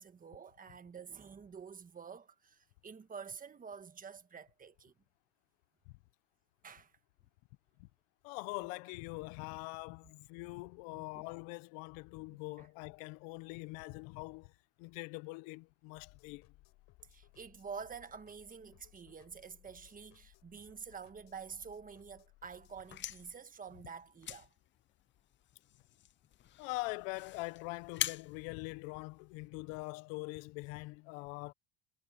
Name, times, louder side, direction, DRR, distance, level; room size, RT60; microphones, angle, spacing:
voice 1, 0.0-4.9 6.6-6.9 10.9-11.2 12.6-12.7 17.1-24.5, right 6 dB, 20° right, 1.4 m, -48 dB
voice 2, 8.2-14.5 14.8-16.5 26.6-31.5, left 24 dB, 85° left, 1.0 m, -43 dB
sound 1, 16.0-23.3, left 21 dB, 70° left, 4.5 m, -64 dB
sound 2, 22.7-29.5, left 12 dB, 30° left, 0.5 m, -45 dB
cardioid pair, 130°, 40 cm